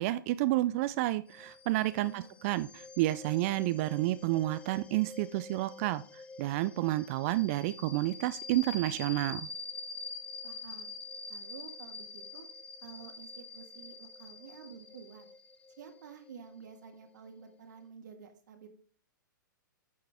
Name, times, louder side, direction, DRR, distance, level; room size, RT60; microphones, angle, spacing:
voice 1, 0.0-6.0 6.4-9.5, right 16 dB, 40° right, 14 dB, 0.4 m, -30 dB
sound 1, 1.3-17.6, left 4 dB, 10° left, 0.7 m, -46 dB
voice 2, 2.0-2.4 10.4-10.9 11.3-12.5 12.8-15.3 15.8-18.7, right 6 dB, 65° right, 4 dB, 1.6 m, -51 dB
9.6 x 6.5 x 3.5 m, 0.42 s
hypercardioid pair, 115°, 11 cm